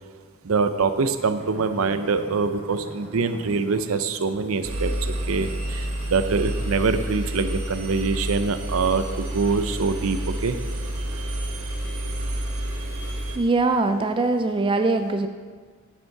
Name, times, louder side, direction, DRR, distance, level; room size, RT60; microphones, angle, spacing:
voice 1, 0.4-10.6, right 4 dB, 70° right, 9 dB, 0.6 m, -24 dB
sound 1, 1.3-7.1, right 1 dB, 55° right, 1.0 m, -44 dB
Engine, 4.6-13.4, right 1 dB, 85° right, 1.3 m, -29 dB
voice 2, 13.4-15.3, right 3 dB, 25° right, 7 dB, 0.3 m, -22 dB
9.2 x 7.1 x 4.7 m, 1.5 s
head